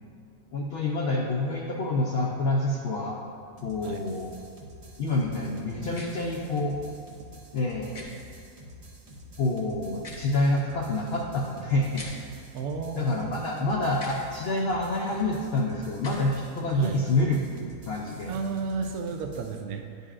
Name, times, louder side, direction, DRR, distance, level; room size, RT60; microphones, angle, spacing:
voice 1, 0.5-3.2 3.6-4.3 5.0-6.8 7.5-8.1 9.4-12.0 13.0-17.4 17.9-18.4, left 2 dB, 75° left, -2 dB, 0.5 m, -27 dB
sound 1, 3.6-19.6, equal, 55° right, 0.4 m, -48 dB
sound 2, 5.9-6.1 7.9-8.1 9.9-10.3 11.9-12.1 13.9-14.2 15.9-16.2, left 2 dB, 35° left, 0.7 m, -41 dB
voice 2, 12.5-13.7 16.7-17.0 18.3-20.1, right 5 dB, 70° right, 5 dB, 1.0 m, -33 dB
9.6 x 5.3 x 2.5 m, 2.3 s
omnidirectional pair, 1.7 m